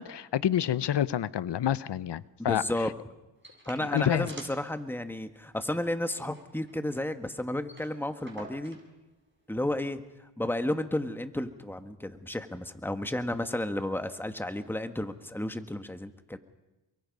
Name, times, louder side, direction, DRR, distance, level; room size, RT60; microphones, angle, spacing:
voice 1, 0.0-2.6 3.9-4.3, left 10 dB, 65° left, 0.9 m, -28 dB
voice 2, 2.4-2.9 3.7-8.8 9.5-16.4, left 1 dB, 5° left, 1.6 m, -32 dB
sound 1, 3.4-4.7 5.0-5.1 5.4-5.6 6.0-7.1 7.4-7.5 7.6-8.9 9.8-9.9, right 2 dB, 25° right, 6.5 m, -47 dB
29.0 x 23.0 x 5.5 m
cardioid pair, 70°, 45 cm